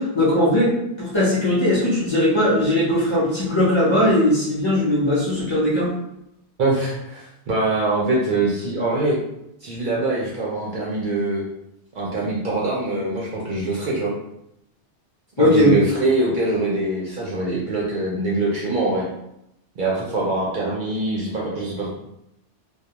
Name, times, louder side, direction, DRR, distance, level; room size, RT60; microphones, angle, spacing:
voice 1, 0.0-5.9 15.4-15.8, left 1 dB, 30° left, -9 dB, 0.6 m, -19 dB
voice 2, 6.6-9.2 9.6-11.4 11.9-14.1 15.4-19.0 19.8-21.9, right 2 dB, 60° right, -5 dB, 0.6 m, -23 dB
2.2 x 2.1 x 2.8 m, 0.81 s
omnidirectional pair, 1.2 m